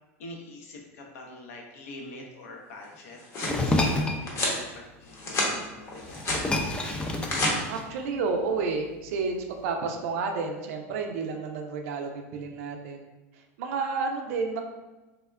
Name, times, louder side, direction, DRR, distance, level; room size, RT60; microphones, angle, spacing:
voice 1, 0.2-6.6, left 2 dB, 80° left, 0 dB, 0.6 m, -45 dB
sound 1, 2.9-3.6 4.3-4.6 5.1-5.5 5.9-6.4 7.0-7.5, left 1 dB, 35° left, 0.8 m, -29 dB
sound 2, 3.4-4.2 5.6-5.7 6.0-8.1, left 2 dB, 10° left, 0.3 m, -28 dB
voice 2, 7.7-13.1 13.3-14.6, right 4 dB, 75° right, 3 dB, 0.4 m, -31 dB
3.4 x 2.1 x 2.3 m, 1.1 s
hypercardioid pair, 105°, 8 cm